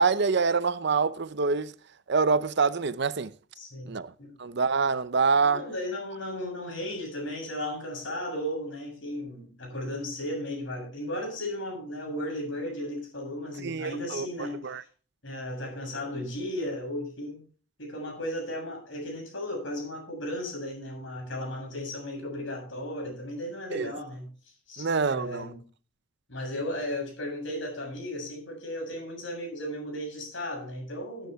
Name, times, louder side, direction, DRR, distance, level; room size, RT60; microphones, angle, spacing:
voice 1, 0.0-1.7 2.1-3.3 3.9-4.1 4.4-5.6 13.6-14.3 14.6-14.8 23.7-23.9 24.8-25.5, right 4 dB, 50° right, 0.6 m, -25 dB
voice 2, 3.6-3.9 4.2-4.3 5.4-14.7 15.2-17.4 17.8-24.3 24.7-25.6 26.3-31.3, left 1 dB, 60° left, 7.6 m, -35 dB
16.0 x 10.0 x 3.5 m
head